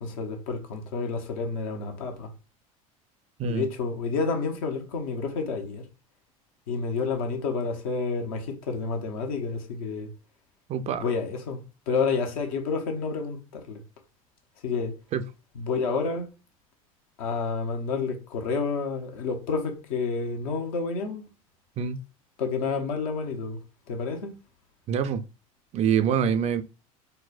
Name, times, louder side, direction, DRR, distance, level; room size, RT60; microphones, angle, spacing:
voice 1, 0.0-2.3 3.4-5.8 6.7-10.1 11.0-13.8 14.6-14.9 15.5-16.3 17.2-21.3 22.4-23.6 23.9-24.3, left 4 dB, 70° left, 0.8 m, -29 dB
voice 2, 10.7-11.0 15.1-15.2 21.8-22.0 24.9-25.2 25.7-26.6, right 7 dB, 35° right, 0.4 m, -25 dB
4.2 x 2.1 x 2.4 m
hypercardioid pair, 80°, 19 cm